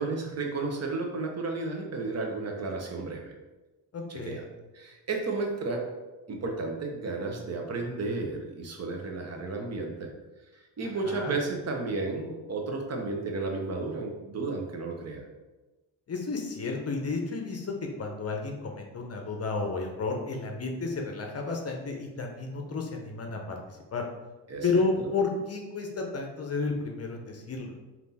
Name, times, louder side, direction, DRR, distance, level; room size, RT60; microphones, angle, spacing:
voice 1, 0.0-3.3 4.1-4.4 4.7-5.8 6.3-10.1 10.8-15.2 24.5-25.1, right 3 dB, 35° right, 2 dB, 0.9 m, -33 dB
voice 2, 3.9-4.4 10.8-11.3 16.1-24.0 24.6-27.7, left 3 dB, 30° left, 2 dB, 0.8 m, -32 dB
3.4 x 2.9 x 4.1 m, 1.1 s
supercardioid pair, 80°, 47 cm